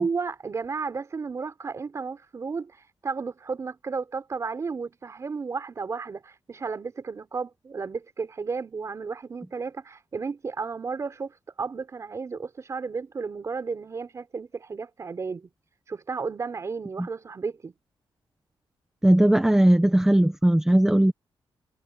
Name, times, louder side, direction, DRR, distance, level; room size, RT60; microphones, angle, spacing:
voice 1, 0.0-15.5 15.9-17.7, right 5 dB, 35° right, 4.8 m, -33 dB
voice 2, 19.0-21.1, right 1 dB, 5° right, 1.2 m, -18 dB
wide cardioid pair, 165°, 9 cm